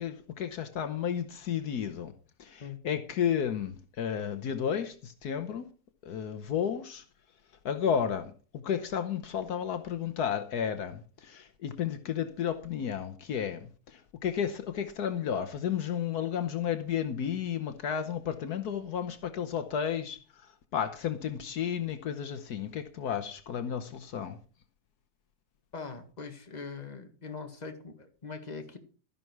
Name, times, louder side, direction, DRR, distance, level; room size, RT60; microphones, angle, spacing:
voice 1, 0.0-2.1 2.4-5.7 6.0-7.0 7.6-24.4, left 8 dB, 70° left, 1.5 m, -32 dB
voice 2, 25.7-28.8, left 4 dB, 25° left, 1.8 m, -42 dB
12.5 x 11.0 x 4.7 m
omnidirectional pair, 1.7 m